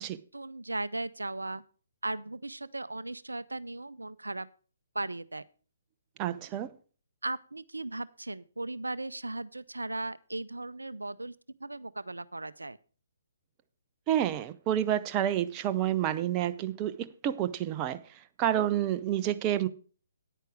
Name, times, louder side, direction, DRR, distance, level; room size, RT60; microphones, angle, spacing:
voice 1, 0.3-1.6 2.0-4.5 4.9-5.4 7.2-11.3 11.6-12.8, right 2 dB, 75° right, 0.5 m, -37 dB
voice 2, 6.2-6.7 14.1-18.0 18.4-19.7, right 11 dB, 20° right, 0.6 m, -29 dB
9.9 x 9.1 x 4.7 m
figure-of-eight pair, 135°, 0 cm